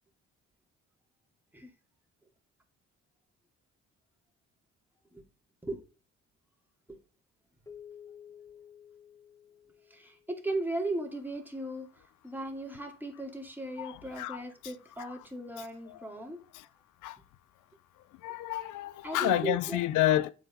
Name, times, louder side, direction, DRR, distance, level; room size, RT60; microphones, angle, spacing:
Keyboard (musical), 7.7-10.6, left 8 dB, 10° left, 0.7 m, -52 dB
voice 1, 9.9-16.4 18.2-18.5 19.0-19.8, right 2 dB, 5° right, 2.4 m, -37 dB
voice 2, 13.8-14.7 15.0-15.1 15.6-16.0 16.5-16.6 17.0-17.2 18.2-20.3, left 14 dB, 90° left, 0.5 m, -30 dB
7.5 x 5.0 x 5.3 m
cardioid pair, 90°, 30 cm